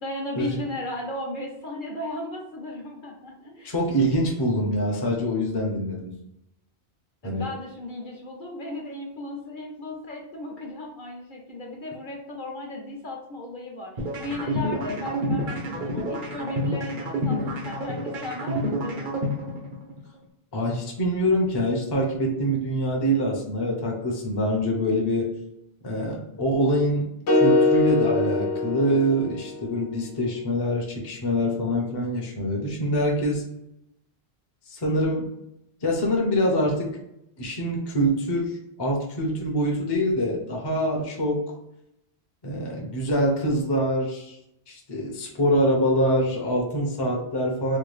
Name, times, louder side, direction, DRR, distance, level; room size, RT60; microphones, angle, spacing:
voice 1, 0.0-3.7 7.2-19.2, left 1 dB, 55° left, -1 dB, 0.9 m, -36 dB
voice 2, 3.6-6.1 7.2-7.5 20.5-25.3 25.8-27.1 27.4-33.4 34.7-35.3 35.8-37.0 37.4-38.5 38.8-41.4 42.4-44.4 44.7-47.8, equal, 30° left, -1 dB, 0.6 m, -25 dB
sound 1, 14.0-20.0, equal, 55° right, 0.9 m, -28 dB
sound 2, 27.3-29.6, left 2 dB, 90° left, 1.0 m, -22 dB
3.4 x 2.3 x 3.1 m, 0.80 s
omnidirectional pair, 1.1 m